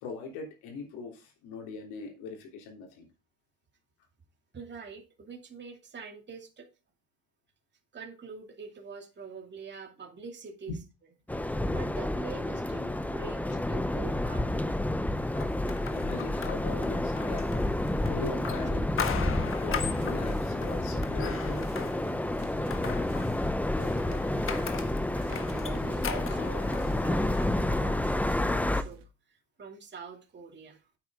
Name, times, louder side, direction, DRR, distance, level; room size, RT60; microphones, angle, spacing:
voice 1, 0.0-3.1 13.5-13.6 15.9-22.0, left 4 dB, 70° left, 3.5 m, -41 dB
voice 2, 4.5-6.7 7.9-10.7 11.4-14.8 24.3-29.0 29.3-30.8, right 5 dB, 25° right, 2.6 m, -45 dB
sound 1, 11.3-28.8, left 1 dB, 5° left, 0.7 m, -30 dB
sound 2, 15.4-27.6, left 7 dB, 30° left, 1.3 m, -40 dB
sound 3, 19.8-29.1, right 4 dB, 65° right, 2.2 m, -55 dB
9.0 x 8.4 x 3.7 m
hypercardioid pair, 85°, 41 cm